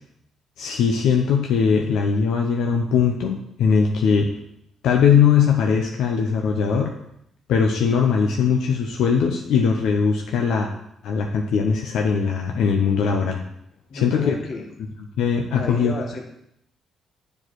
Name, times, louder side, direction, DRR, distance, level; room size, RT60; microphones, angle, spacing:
voice 1, 0.6-4.3 4.8-6.9 7.5-10.7 11.0-13.4 14.0-14.3 15.2-15.9, left 6 dB, 80° left, 2 dB, 0.8 m, -20 dB
voice 2, 13.9-14.7 15.5-16.2, left 3 dB, 55° left, 3 dB, 1.5 m, -31 dB
7.4 x 4.8 x 6.3 m, 0.76 s
cardioid pair, 90°, 0 cm